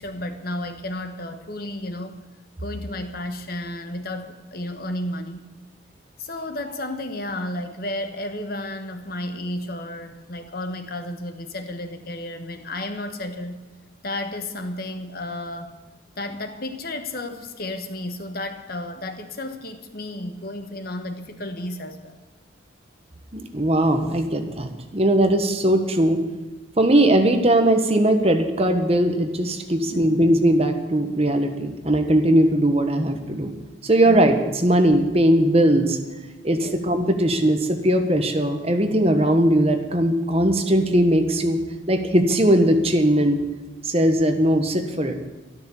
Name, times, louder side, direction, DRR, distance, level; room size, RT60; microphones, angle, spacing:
voice 1, 0.0-2.1 2.6-5.4 6.2-13.6 14.0-15.7 16.2-22.2 29.9-30.2 34.0-34.2 36.6-36.8, left 1 dB, 50° left, 7 dB, 1.3 m, -32 dB
voice 2, 23.3-26.2 26.8-33.5 33.8-36.0 36.4-41.6 41.9-43.4 43.8-45.1, right 1 dB, 30° right, 6 dB, 1.3 m, -19 dB
12.5 x 12.5 x 7.1 m, 1.2 s
head